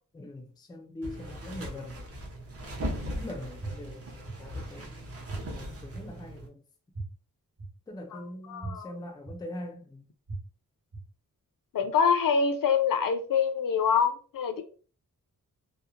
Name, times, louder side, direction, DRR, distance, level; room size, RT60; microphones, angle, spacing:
voice 1, 0.1-2.2 2.9-5.1 5.4-6.6 7.9-10.1, left 1 dB, 10° left, 0.4 m, -42 dB
sound 1, 1.0-6.5, equal, 40° right, 0.7 m, -39 dB
sound 2, 3.6-3.7 4.2-4.3 5.3-5.4 5.9-6.0 6.9-7.0 7.6-7.7 8.6-8.7 9.2-9.3 10.3-10.4 10.9-11.0, right 3 dB, 65° right, 1.2 m, -37 dB
voice 2, 8.5-8.9 11.7-14.6, left 6 dB, 65° left, 0.5 m, -25 dB
2.9 x 2.1 x 2.4 m
wide cardioid pair, 140°, 35 cm